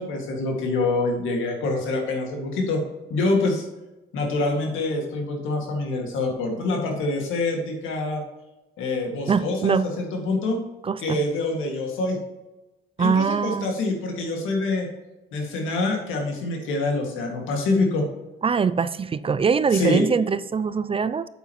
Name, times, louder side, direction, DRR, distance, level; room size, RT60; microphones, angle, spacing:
voice 1, 0.0-2.8 3.1-3.7 4.1-8.2 8.8-10.6 11.0-12.2 13.0-14.9 15.3-18.1 19.7-20.0, left 2 dB, 85° left, 2 dB, 2.2 m, -25 dB
voice 2, 9.3-9.8 10.8-11.2 13.0-13.7 18.4-21.3, right 6 dB, 30° right, 15 dB, 0.4 m, -22 dB
8.9 x 8.1 x 3.1 m, 1.0 s
cardioid pair, 90°, 20 cm